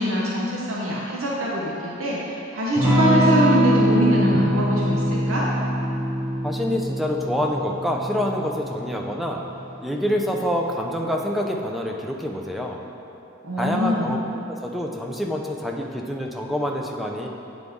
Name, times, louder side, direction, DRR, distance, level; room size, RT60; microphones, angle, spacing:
voice 1, 0.0-5.5 13.4-14.2, equal, 85° right, -5 dB, 0.9 m, -24 dB
Electric guitar / Strum, 2.7-11.0, equal, 20° right, 1.5 m, -23 dB
voice 2, 6.4-9.4 9.8-12.8 13.6-14.2 14.5-17.3, equal, ahead, 0 dB, 0.5 m, -26 dB
9.1 x 4.0 x 3.6 m, 2.8 s
head